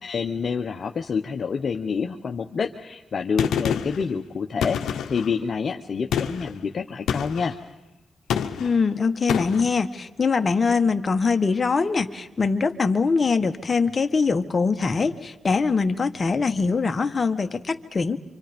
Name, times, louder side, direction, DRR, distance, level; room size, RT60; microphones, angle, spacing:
voice 1, 0.0-7.6, left 5 dB, 60° left, 4 dB, 0.9 m, -27 dB
Gunshot gunfire, 3.4-4.0 4.6-5.3 6.1-6.5 7.1-7.5 8.3-8.8 9.3-9.7, left 8 dB, 90° left, 0.9 m, -27 dB
voice 2, 8.6-18.2, left 4 dB, 45° left, 7 dB, 1.4 m, -23 dB
27.0 x 25.5 x 5.2 m, 0.97 s
cardioid pair, 60°, 0 cm